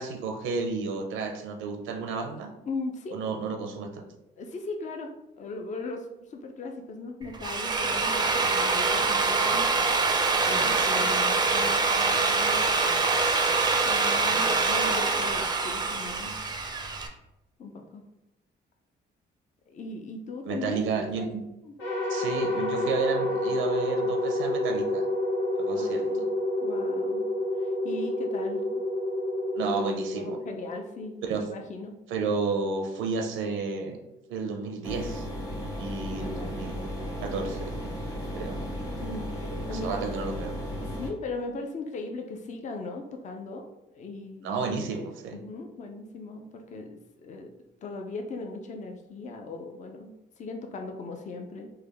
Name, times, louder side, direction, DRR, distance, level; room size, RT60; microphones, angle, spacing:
voice 1, 0.0-2.5 3.1-4.1 10.4-11.1 20.5-21.4 22.1-25.0 25.6-26.1 29.6-30.4 31.2-31.5 32.1-34.0 34.3-35.3 35.8-37.8 38.4-38.6 39.7-40.5 44.4-45.4, right 4 dB, 85° right, 3 dB, 0.5 m, -32 dB
voice 2, 2.7-3.2 4.4-5.1 5.4-9.7 10.4-12.7 13.8-16.3 17.6-18.0 19.7-21.3 21.6-21.7 25.7-26.2 26.6-27.2 27.6-28.8 30.1-31.2 31.5-32.0 36.1-36.6 39.0-40.0 40.8-43.7 43.9-44.5 45.3-47.5 47.8-51.7, left 3 dB, 40° left, 3 dB, 0.4 m, -38 dB
Drill, 7.2-17.1, right 4 dB, 20° right, 0.4 m, -25 dB
sound 1, 21.8-31.1, left 1 dB, 90° left, 1.0 m, -29 dB
sound 2, 34.8-41.1, equal, 20° left, 1.1 m, -35 dB
3.3 x 2.2 x 3.4 m, 0.92 s
cardioid pair, 90°, 20 cm